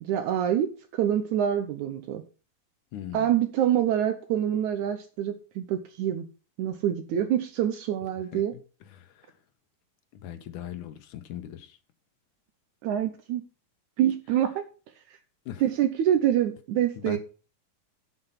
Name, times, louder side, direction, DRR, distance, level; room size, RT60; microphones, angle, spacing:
voice 1, 0.0-2.2 3.1-6.3 6.6-8.5 12.8-13.4 14.0-14.6 15.6-17.2, right 10 dB, 70° right, 2.0 m, -26 dB
voice 2, 2.9-3.3 8.3-8.4 8.8-9.3 10.1-11.8 15.5-15.6 17.0-17.2, left 10 dB, 70° left, 2.3 m, -39 dB
8.1 x 7.9 x 5.7 m
omnidirectional pair, 4.0 m